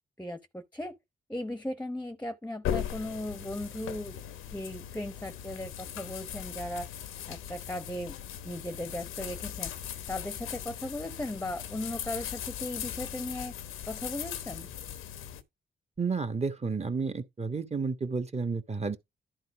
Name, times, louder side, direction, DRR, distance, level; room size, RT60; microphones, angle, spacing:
voice 1, 0.2-1.0 1.3-4.2 4.5-6.9 7.3-8.1 8.4-9.7 10.1-13.5 13.9-14.7, left 1 dB, 5° left, 0.9 m, -37 dB
sound 1, 2.6-15.4, left 10 dB, 90° left, 1.0 m, -39 dB
voice 2, 16.0-19.0, right 4 dB, 30° right, 1.4 m, -31 dB
11.0 x 3.9 x 4.7 m
supercardioid pair, 55°, 21 cm